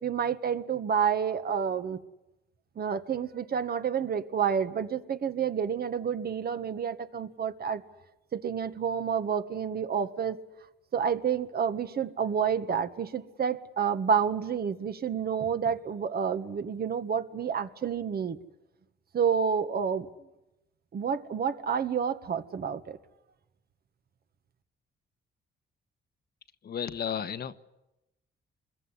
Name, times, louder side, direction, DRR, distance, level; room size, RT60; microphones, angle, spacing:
voice 1, 0.0-2.0 2.7-7.8 8.3-10.4 10.9-18.4 19.1-20.1 20.9-23.0, right 7 dB, 50° right, 10 dB, 1.8 m, -29 dB
voice 2, 26.6-27.7, left 8 dB, 55° left, 10 dB, 1.3 m, -33 dB
25.5 x 21.5 x 9.9 m, 0.93 s
cardioid pair, 90°, 20 cm